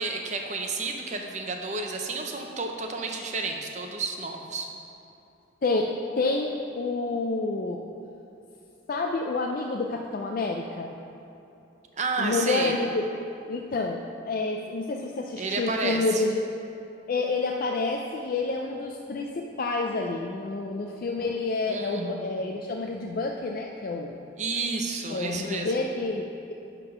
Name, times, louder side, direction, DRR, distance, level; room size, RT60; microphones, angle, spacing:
voice 1, 0.0-4.7 12.0-12.7 15.4-16.2 21.7-22.4 24.4-25.8, right 3 dB, 35° right, 2 dB, 0.7 m, -31 dB
voice 2, 6.2-7.8 8.9-10.9 12.2-13.1 13.5-16.4 17.1-24.2 25.1-26.5, left 3 dB, 45° left, 1 dB, 0.4 m, -29 dB
11.0 x 3.6 x 5.8 m, 2.8 s
head